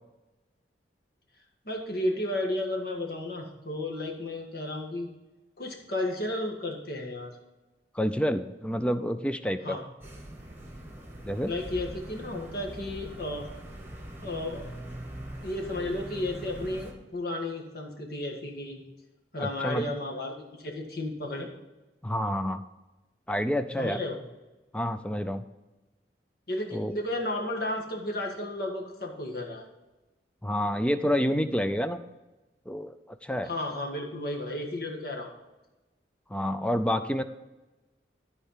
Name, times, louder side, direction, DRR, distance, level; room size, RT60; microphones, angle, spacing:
voice 1, 1.7-5.1 5.6-7.3 9.6-9.8 11.5-13.5 14.2-14.7 15.4-18.8 19.3-21.5 23.8-24.2 26.5-29.6 33.4-35.3, left 1 dB, 55° left, 0 dB, 1.8 m, -33 dB
voice 2, 7.9-9.8 11.2-11.5 19.4-19.9 22.0-22.6 23.3-24.0 24.7-25.4 26.7-26.9 30.4-32.0 32.7-33.0 33.2-33.5 36.3-37.2, equal, 5° left, 10 dB, 0.4 m, -28 dB
sound 1, 10.0-16.9, right 1 dB, 10° right, 1.4 m, -42 dB
13.5 x 4.5 x 5.7 m, 1.1 s
head